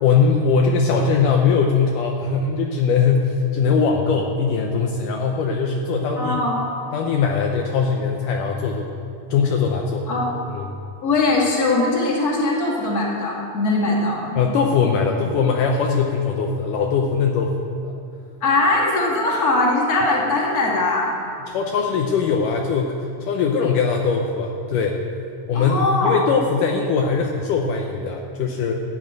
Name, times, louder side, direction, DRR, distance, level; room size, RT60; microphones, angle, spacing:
voice 1, 0.0-6.4 6.9-8.9 9.3-10.1 10.6-10.7 14.4-17.5 17.8-17.9 21.5-25.0 25.5-28.7, left 5 dB, 75° left, 1 dB, 2.2 m, -21 dB
voice 2, 6.2-6.6 10.1-10.4 11.0-14.4 18.4-21.1 25.5-26.2, left 2 dB, 30° left, -3 dB, 2.3 m, -20 dB
14.0 x 6.0 x 9.0 m, 2.6 s
omnidirectional pair, 4.0 m